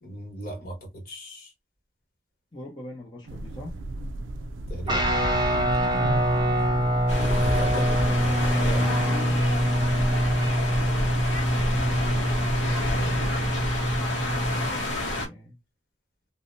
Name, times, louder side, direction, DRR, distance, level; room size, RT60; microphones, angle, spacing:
voice 1, 0.0-1.5 4.7-5.3 7.1-8.8, right 1 dB, 50° left, 1.1 m, -37 dB
voice 2, 2.5-3.8 7.7-9.5 11.9-12.8 14.0-15.6, left 1 dB, 25° left, 0.6 m, -42 dB
sound 1, 3.3-13.8, right 1 dB, 85° right, 0.4 m, -34 dB
Guitar, 4.9-14.7, equal, 20° right, 0.5 m, -25 dB
sound 2, 7.1-15.3, left 1 dB, 75° left, 0.8 m, -29 dB
2.7 x 2.1 x 2.5 m
head